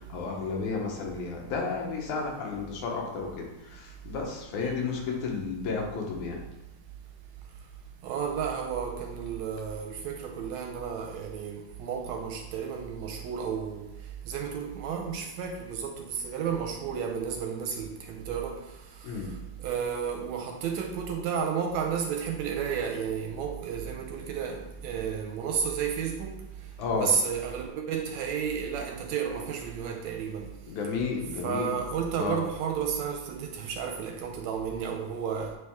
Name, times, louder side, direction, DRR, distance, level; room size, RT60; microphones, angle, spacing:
voice 1, 0.0-6.4 19.0-19.3 26.8-27.2 30.7-31.7 32.2-32.4, left 4 dB, 85° left, 0 dB, 2.4 m, -32 dB
voice 2, 8.0-13.9 14.3-18.6 19.6-26.4 26.9-30.5 31.4-35.5, right 7 dB, 80° right, 3 dB, 1.7 m, -32 dB
9.0 x 3.1 x 3.5 m, 0.95 s
omnidirectional pair, 3.5 m